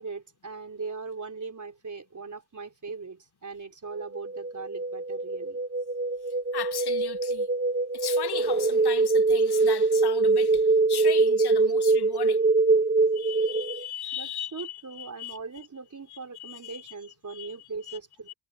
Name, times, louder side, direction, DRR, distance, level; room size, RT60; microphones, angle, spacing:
voice 1, 0.0-5.6 14.1-18.3, right 4 dB, 40° right, 4.0 m, -40 dB
sound 1, 3.9-13.8, right 3 dB, 20° right, 0.8 m, -24 dB
voice 2, 6.5-7.5 7.9-12.4 13.1-15.4 16.1-16.9 17.3-18.0 18.3-18.4, left 10 dB, 60° left, 0.6 m, -38 dB
cardioid pair, 85°, 45 cm